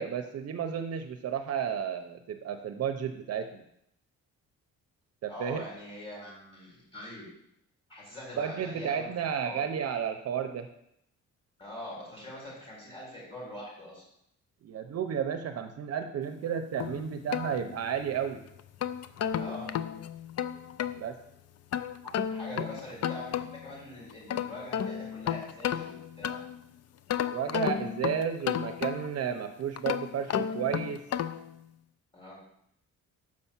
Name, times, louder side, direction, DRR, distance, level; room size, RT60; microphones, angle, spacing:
voice 1, 0.0-3.6 5.2-5.6 8.4-10.7 14.6-18.4 20.9-21.1 22.5-22.7 27.3-31.0, right 8 dB, 55° right, 7 dB, 0.6 m, -32 dB
voice 2, 5.3-7.3 7.9-9.1 9.4-9.6 11.6-14.0 19.4-19.7 22.3-26.4 32.1-32.4, left 1 dB, 20° left, -5 dB, 4.0 m, -43 dB
sound 1, 16.8-18.1 18.6-21.0 21.7-23.7 24.1-26.6 27.1-29.3 29.8-31.5, left 9 dB, 55° left, 0.4 m, -33 dB
6.4 x 5.5 x 7.1 m, 0.75 s
wide cardioid pair, 170°, 30 cm